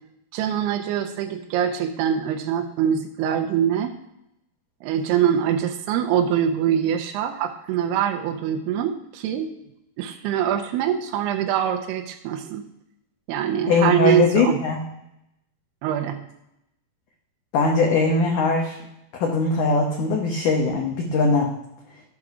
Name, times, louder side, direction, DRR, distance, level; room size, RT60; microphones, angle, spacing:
voice 1, 0.3-3.9 4.8-9.5 10.0-12.6 13.3-14.6 15.8-16.2, right 9 dB, 80° right, 4 dB, 2.5 m, -23 dB
voice 2, 13.7-14.8 17.5-18.8 19.2-21.5, left 3 dB, 70° left, 0 dB, 2.0 m, -20 dB
13.0 x 6.2 x 4.8 m, 0.82 s
omnidirectional pair, 5.2 m